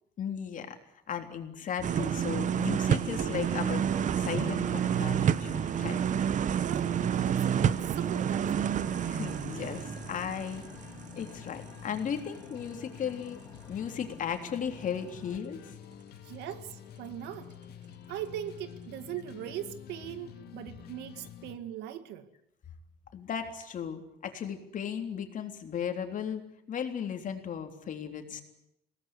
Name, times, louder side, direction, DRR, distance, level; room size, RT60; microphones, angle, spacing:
voice 1, 0.2-0.8 1.1-3.9 4.2-6.0 9.0-10.6 11.1-13.4 13.7-15.8 23.1-28.4, left 8 dB, 50° left, 3.6 m, -36 dB
sound 1, 1.8-11.6 12.0-12.1, right 8 dB, 45° right, 1.0 m, -29 dB
sound 2, 3.0-21.6, left 9 dB, 70° left, 2.0 m, -49 dB
sound 3, 3.5-15.4, left 3 dB, 15° left, 2.7 m, -54 dB
voice 2, 6.6-8.8 16.2-17.5 18.1-22.3, right 11 dB, 90° right, 2.0 m, -40 dB
22.0 x 18.5 x 9.8 m
cardioid pair, 110°, 17 cm